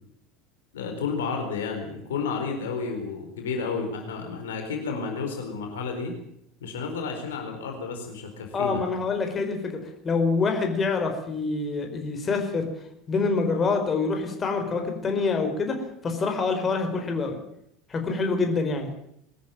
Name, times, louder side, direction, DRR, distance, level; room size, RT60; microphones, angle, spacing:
voice 1, 0.7-6.1 6.6-8.8, left 5 dB, 65° left, 3 dB, 4.3 m, -31 dB
voice 2, 8.5-9.8 10.0-12.7 13.1-17.4 17.9-18.9, left 4 dB, 25° left, 5 dB, 4.7 m, -26 dB
22.0 x 13.5 x 9.0 m, 0.76 s
figure-of-eight pair, 75°, 0 cm